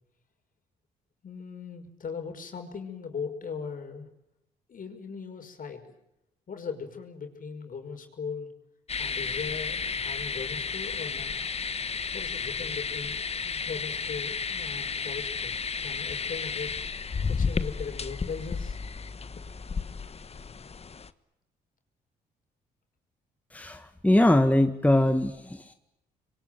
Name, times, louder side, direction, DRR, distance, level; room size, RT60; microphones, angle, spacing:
voice 1, 1.2-4.1 4.7-5.9 6.5-8.5 9.0-11.4 12.1-18.8, left 5 dB, 55° left, 5 dB, 5.6 m, -39 dB
sound 1, 8.9-21.1, left 5 dB, 35° left, 1.3 m, -33 dB
voice 2, 23.5-25.7, left 1 dB, 10° left, 7 dB, 1.8 m, -22 dB
26.5 x 23.0 x 9.3 m, 0.86 s
supercardioid pair, 60°, 17 cm